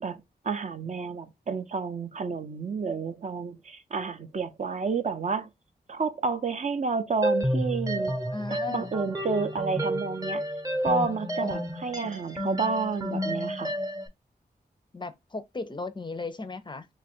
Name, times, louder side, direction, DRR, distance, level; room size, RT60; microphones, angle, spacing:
voice 1, 0.0-5.5 5.9-8.1 8.5-10.4 10.8-13.7, right 4 dB, 45° right, 0.5 m, -30 dB
sound 1, 7.2-14.1, equal, 20° right, 0.8 m, -30 dB
voice 2, 8.3-8.9 11.4-11.6 11.9-12.1 14.9-16.9, left 3 dB, 30° left, 0.5 m, -36 dB
3.1 x 2.4 x 4.2 m
cardioid pair, 70°, 17 cm